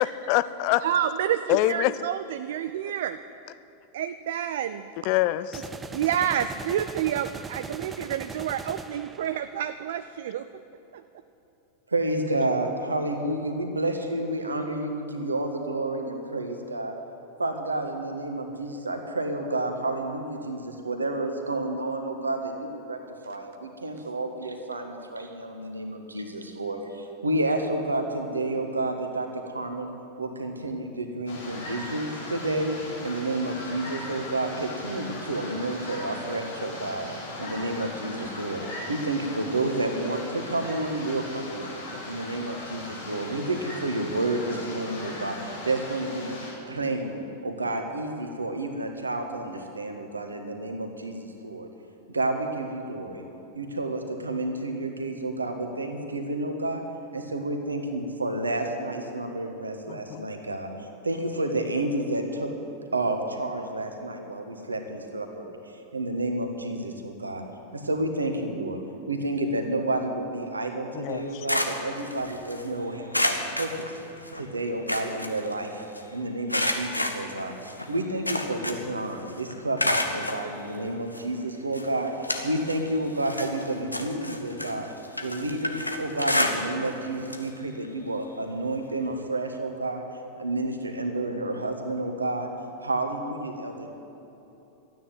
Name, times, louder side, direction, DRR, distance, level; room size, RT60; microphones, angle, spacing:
voice 1, 0.0-0.8 1.5-1.9 5.1-5.6 41.9-42.0 59.9-60.3 70.9-71.3, left 15 dB, 45° left, 15 dB, 0.5 m, -25 dB
sound 1, 0.8-0.9 5.5-9.7, right 4 dB, 15° right, 0.6 m, -40 dB
voice 2, 0.8-3.2 3.9-4.9 5.9-10.6 10.9-11.0, right 10 dB, 55° right, 11 dB, 0.4 m, -29 dB
voice 3, 11.9-17.0 17.4-23.0 23.2-29.9 30.2-37.1 37.4-38.6 38.9-41.7 42.0-46.3 46.6-51.7 52.1-53.2 53.5-56.8 57.1-62.5 62.9-67.4 67.7-68.8 69.1-74.0 74.3-75.8 76.1-77.5 77.9-84.9 85.2-90.0 90.4-92.5 92.8-93.9, right 2 dB, 80° right, 5 dB, 1.5 m, -30 dB
sound 2, 31.3-46.5, left 2 dB, 65° left, 3.7 m, -39 dB
sound 3, 71.1-72.7 73.1-74.4 74.7-76.0 76.5-79.0 79.3-80.4 81.1-81.2 81.7-82.9 83.2-87.0 87.3-87.5 87.8-87.9 89.2-89.3, left 1 dB, 85° left, 1.0 m, -30 dB
13.0 x 9.4 x 9.3 m, 3.0 s
figure-of-eight pair, 90°, 0 cm